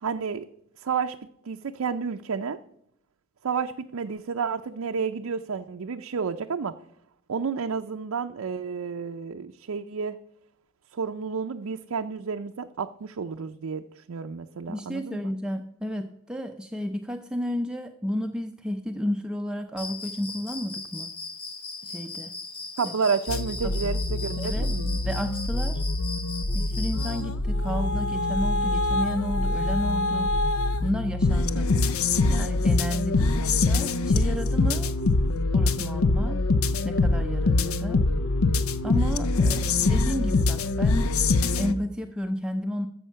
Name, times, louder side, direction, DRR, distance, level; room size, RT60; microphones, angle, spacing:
voice 1, 0.0-0.5 0.8-1.2 1.5-2.6 3.4-6.7 7.3-10.2 10.9-15.2 22.8-25.0, right 5 dB, 70° right, 5 dB, 0.5 m, -30 dB
voice 2, 14.7-21.1 21.8-22.3 23.6-23.8 24.4-24.7 25.0-25.8 26.5-30.4 30.8-31.7 32.3-34.9 35.5-36.4 36.8-38.0 38.8-41.1 41.6-42.9, equal, 5° right, 4 dB, 0.5 m, -32 dB
Cricket, 19.8-27.2, left 3 dB, 25° left, 1.2 m, -38 dB
sound 1, 23.3-41.7, left 2 dB, 70° left, 0.6 m, -24 dB
13.0 x 7.1 x 5.5 m, 0.79 s
head